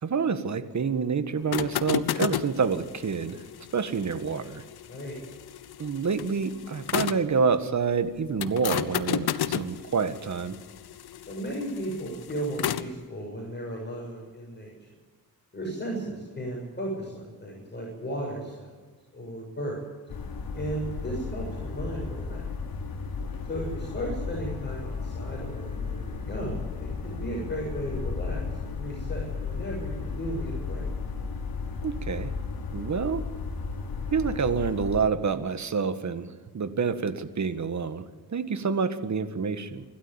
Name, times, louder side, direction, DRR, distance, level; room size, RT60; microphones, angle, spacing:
voice 1, 0.0-3.4 3.7-4.6 5.8-10.6 31.8-32.3 32.7-33.2 34.1-39.8, right 5 dB, 50° right, 11 dB, 1.7 m, -28 dB
sound 1, 1.4-7.3 8.4-12.9, left 10 dB, 85° left, 1.0 m, -33 dB
voice 2, 4.9-5.2 11.3-14.7 15.5-18.7 19.1-19.8 20.5-22.4 23.5-30.9, right 1 dB, 30° left, -3 dB, 7.1 m, -35 dB
sound 2, 20.1-35.0, left 4 dB, 70° left, 3.1 m, -34 dB
26.0 x 12.5 x 8.9 m, 1.4 s
cardioid pair, 80°, 37 cm